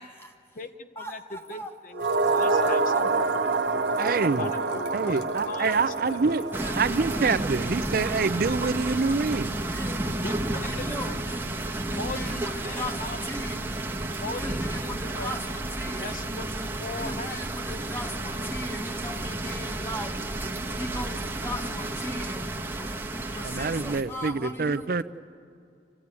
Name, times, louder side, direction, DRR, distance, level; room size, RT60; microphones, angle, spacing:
voice 1, 0.0-0.6 0.9-1.8 2.4-3.3 3.9-4.8 5.6-5.8 6.6-6.8 9.7-10.1 10.6-11.5 11.9-13.7 14.4-16.2 17.0-25.0, equal, 15° left, 4 dB, 1.5 m, -39 dB
voice 2, 0.5-3.3 4.4-5.7 6.1-6.4 10.0-11.2 12.0-13.5 14.2-15.3 16.0-17.4, left 2 dB, 45° left, 9 dB, 0.7 m, -39 dB
sound 1, 1.9-10.4 10.7-10.8, right 3 dB, 70° right, 0.9 m, -28 dB
sound 2, 2.0-7.3, left 1 dB, 80° left, 1.1 m, -43 dB
voice 3, 4.0-4.5 4.9-6.4 6.8-9.6 23.4-25.0, right 4 dB, 55° right, 13 dB, 0.5 m, -26 dB
sound 3, 6.5-24.0, right 2 dB, 10° right, 1.0 m, -32 dB
27.0 x 15.0 x 9.6 m, 2.4 s
head